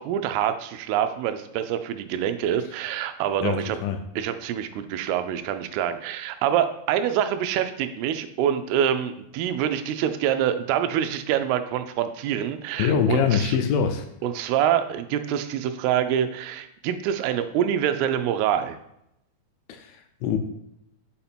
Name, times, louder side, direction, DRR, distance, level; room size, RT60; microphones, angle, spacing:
voice 1, 0.0-3.8 4.2-13.6 14.2-18.8, right 10 dB, 85° right, 9 dB, 2.5 m, -26 dB
voice 2, 3.4-4.0 12.8-14.0 19.7-20.4, left 7 dB, 80° left, 7 dB, 2.1 m, -24 dB
5.7 x 5.6 x 4.3 m, 0.80 s
omnidirectional pair, 4.6 m